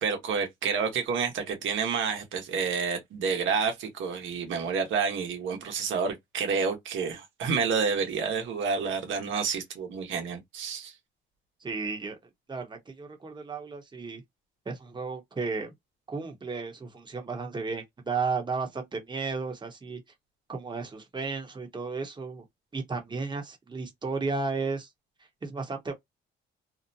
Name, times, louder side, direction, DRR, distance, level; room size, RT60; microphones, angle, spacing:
voice 1, 0.0-10.9, right 5 dB, 75° right, 1.1 m, -29 dB
voice 2, 11.6-12.2 12.5-14.2 14.7-15.7 16.1-20.0 20.5-22.4 22.7-24.9 25.4-25.9, right 4 dB, 25° right, 0.9 m, -33 dB
2.6 x 2.1 x 2.7 m
cardioid pair, 90°, 20 cm